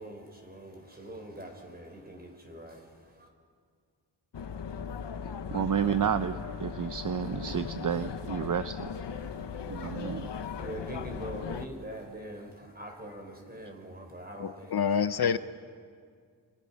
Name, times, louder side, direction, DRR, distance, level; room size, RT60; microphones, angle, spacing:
voice 1, 0.0-3.3 9.2-15.4, right 1 dB, 20° right, 3 dB, 4.8 m, -44 dB
sound 1, 4.3-11.7, left 6 dB, 75° left, 1.1 m, -38 dB
voice 2, 5.5-8.9 9.7-10.3, right 8 dB, 50° right, 11 dB, 0.7 m, -31 dB
voice 3, 14.4-15.4, left 7 dB, 60° left, 13 dB, 0.7 m, -27 dB
29.0 x 26.0 x 5.7 m, 2.1 s
wide cardioid pair, 80°, 42 cm